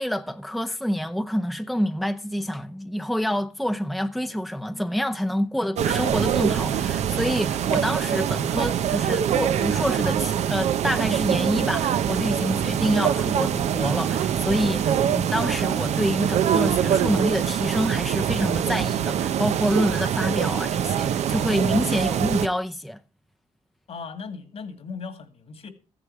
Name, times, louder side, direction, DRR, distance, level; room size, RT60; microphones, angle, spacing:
voice 1, 0.0-23.0, equal, ahead, 0.7 m, -27 dB
sound 1, 5.8-22.5, right 9 dB, 75° right, 0.7 m, -24 dB
voice 2, 23.9-25.7, left 5 dB, 65° left, 2.2 m, -37 dB
14.0 x 10.0 x 4.8 m
cardioid pair, 70°, 11 cm